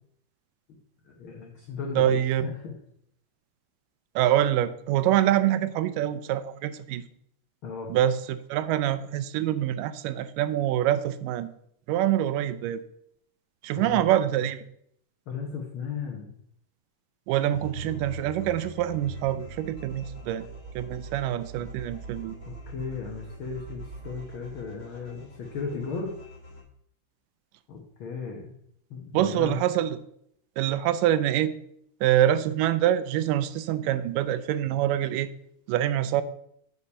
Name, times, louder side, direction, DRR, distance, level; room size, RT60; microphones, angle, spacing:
voice 1, 1.0-2.7 7.6-7.9 13.8-14.1 15.3-16.3 17.8-18.0 22.5-26.1 27.7-28.5 28.9-29.6, left 5 dB, 75° left, 0 dB, 1.2 m, -36 dB
voice 2, 2.0-2.5 4.2-7.0 7.9-11.5 11.9-12.8 13.6-14.6 17.3-20.4 20.8-22.3 29.1-30.0 30.6-31.6 32.0-35.3 35.7-36.2, right 12 dB, 85° right, 13 dB, 2.1 m, -25 dB
sound 1, 17.5-26.6, right 2 dB, 30° left, 0.8 m, -43 dB
8.4 x 5.1 x 5.4 m, 0.71 s
omnidirectional pair, 3.8 m